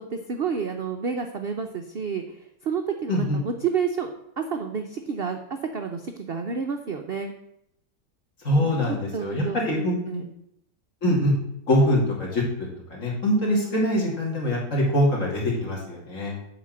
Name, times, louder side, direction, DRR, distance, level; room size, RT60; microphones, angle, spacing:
voice 1, 0.0-2.2 2.6-4.1 4.4-7.3 8.6-8.7 9.1-10.2, right 6 dB, 60° right, 5 dB, 0.6 m, -30 dB
voice 2, 3.1-3.4 8.4-10.3 11.0-11.3 11.7-16.3, equal, 45° left, -2 dB, 2.9 m, -24 dB
8.1 x 5.1 x 7.6 m, 0.77 s
omnidirectional pair, 1.9 m